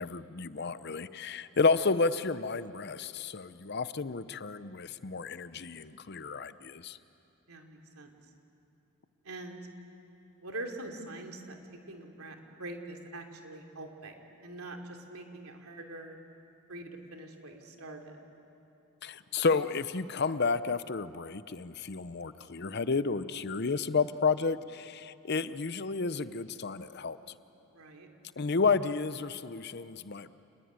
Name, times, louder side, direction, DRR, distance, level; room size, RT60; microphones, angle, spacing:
voice 1, 0.0-7.0 19.0-27.2 28.4-30.3, left 4 dB, 50° left, 14 dB, 0.7 m, -31 dB
voice 2, 7.5-8.1 9.2-9.6 10.4-11.6 11.9-14.1 14.4-16.2 16.7-18.1 27.7-28.1, right 2 dB, 90° right, 3 dB, 3.1 m, -44 dB
28.5 x 20.5 x 9.6 m, 2.9 s
head